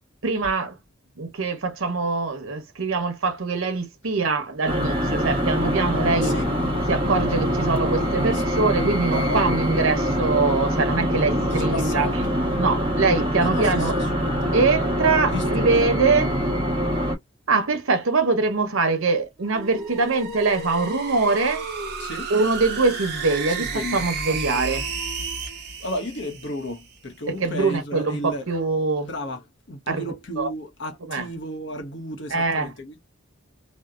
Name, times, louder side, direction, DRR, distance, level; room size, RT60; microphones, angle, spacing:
voice 1, 0.2-0.8 1.2-6.4 6.9-12.1 12.6-13.9 14.5-16.3 17.5-21.7 22.3-24.9 27.3-29.1 29.9-30.5 31.0-31.3 32.3-32.7, right 3 dB, 80° right, 0.8 m, -23 dB
sound 1, 4.7-17.2, equal, 25° right, 1.0 m, -24 dB
voice 2, 9.0-9.4 11.5-12.4 13.4-14.5 15.3-15.9 22.0-22.3 23.5-24.7 25.8-28.5 29.0-33.0, left 1 dB, 55° left, 0.8 m, -33 dB
Dog, 19.4-25.8, equal, 5° left, 0.7 m, -39 dB
sound 2, 19.5-27.0, right 5 dB, 50° right, 0.9 m, -33 dB
2.7 x 2.1 x 2.3 m
head